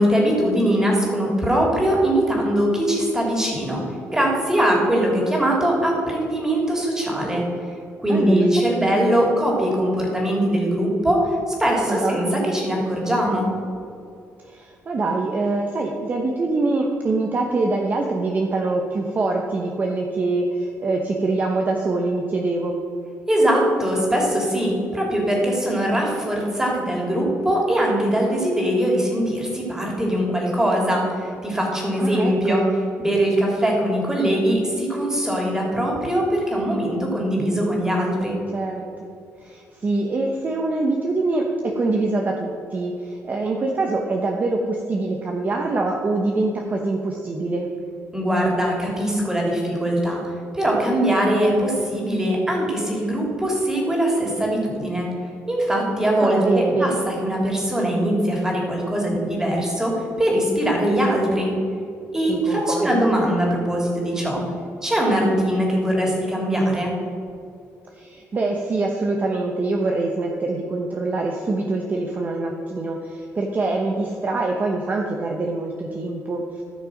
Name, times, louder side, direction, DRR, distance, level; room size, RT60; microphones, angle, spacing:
voice 1, 0.0-3.8 4.1-7.4 8.0-13.5 23.3-32.6 33.0-38.4 48.1-55.1 55.5-61.5 62.1-64.4 64.8-66.9, right 1 dB, 10° right, -2 dB, 3.1 m, -21 dB
voice 2, 8.1-8.9 11.9-12.2 14.4-22.8 32.0-32.6 38.5-38.9 39.4-47.7 56.2-57.0 62.3-63.0 67.9-76.6, right 2 dB, 35° right, 1 dB, 1.0 m, -24 dB
15.0 x 6.3 x 5.2 m, 2.6 s
cardioid pair, 125°, 5 cm